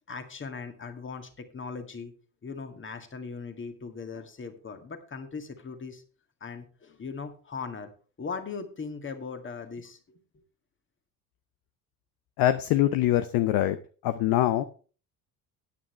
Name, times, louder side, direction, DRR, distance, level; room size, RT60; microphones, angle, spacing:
voice 1, 0.1-2.1 2.4-6.0 6.4-7.9 8.2-10.2, left 5 dB, 25° left, 8 dB, 2.0 m, -39 dB
voice 2, 12.4-13.8 14.0-14.6, left 13 dB, 45° left, 12 dB, 0.8 m, -23 dB
15.5 x 9.6 x 3.3 m, 0.38 s
figure-of-eight pair, 60°, 50 cm